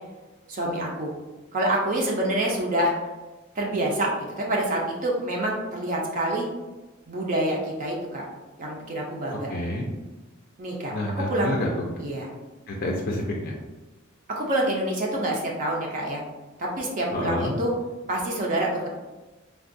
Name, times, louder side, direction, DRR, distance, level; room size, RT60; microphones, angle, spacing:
voice 1, 0.5-1.1 1.5-2.9 3.5-6.5 7.1-8.3 8.6-9.5 10.6-11.5 12.0-12.3 14.3-16.2 16.6-17.7 18.1-18.9, right 1 dB, 40° right, -2 dB, 0.5 m, -27 dB
voice 2, 9.5-9.9 10.9-11.7 12.7-13.5 17.1-17.5, left 1 dB, 45° left, -1 dB, 0.4 m, -28 dB
3.4 x 2.3 x 2.5 m, 1.1 s
head